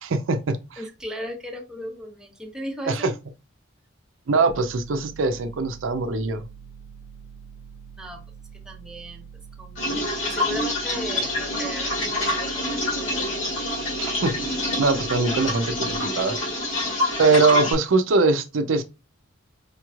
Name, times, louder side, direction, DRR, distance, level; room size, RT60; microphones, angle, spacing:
voice 1, 0.0-0.8 2.9-3.1 4.3-6.4 14.0-16.4 17.2-18.8, right 3 dB, 80° right, 0.5 m, -22 dB
voice 2, 0.8-3.1 8.0-8.2 8.6-9.3 9.6-9.9 10.2-13.4, equal, 5° right, 0.8 m, -36 dB
sound 1, 4.5-16.0, right 7 dB, 45° left, 0.4 m, -44 dB
sound 2, 9.8-17.7, left 1 dB, 85° left, 2.0 m, -26 dB
5.0 x 3.0 x 2.3 m
head